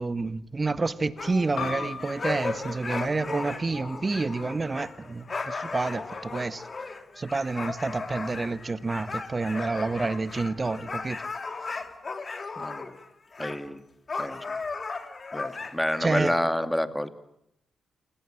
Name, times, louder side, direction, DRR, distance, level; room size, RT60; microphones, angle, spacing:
voice 1, 0.0-6.6 7.2-11.2 11.7-11.8 16.0-16.4, right 3 dB, 35° right, 1.6 m, -29 dB
sound 1, 1.2-13.1 13.3-13.6 14.1-16.0, left 4 dB, 45° left, 3.1 m, -36 dB
sound 2, 1.6-6.7, left 6 dB, 70° left, 5.2 m, -41 dB
voice 2, 12.6-12.9 13.4-13.8 14.2-14.4 15.3-17.1, left 1 dB, 5° left, 2.4 m, -28 dB
28.0 x 19.0 x 9.1 m
hypercardioid pair, 40°, 0 cm